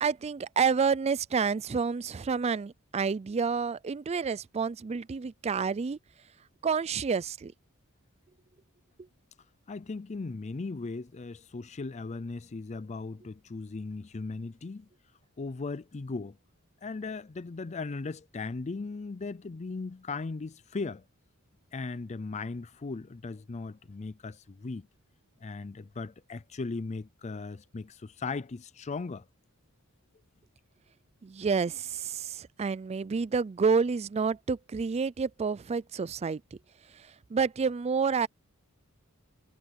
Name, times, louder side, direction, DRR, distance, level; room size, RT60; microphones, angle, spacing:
voice 1, 0.0-6.0 6.6-7.5 31.2-36.4 36.9-38.3, right 5 dB, 30° right, 0.4 m, -29 dB
voice 2, 9.7-14.9 15.4-16.4 16.8-21.0 21.7-24.9 25.4-29.3, left 3 dB, 30° left, 0.5 m, -37 dB
head